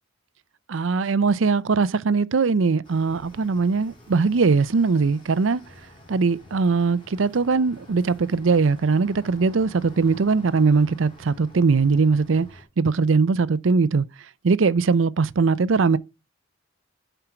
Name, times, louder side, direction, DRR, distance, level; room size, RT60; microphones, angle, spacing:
voice 1, 0.7-5.6 6.1-12.5 12.8-14.1 14.4-16.0, right 4 dB, 70° right, 0.5 m, -20 dB
sound 1, 2.8-12.6, left 1 dB, 25° left, 3.3 m, -49 dB
7.7 x 4.6 x 5.7 m
head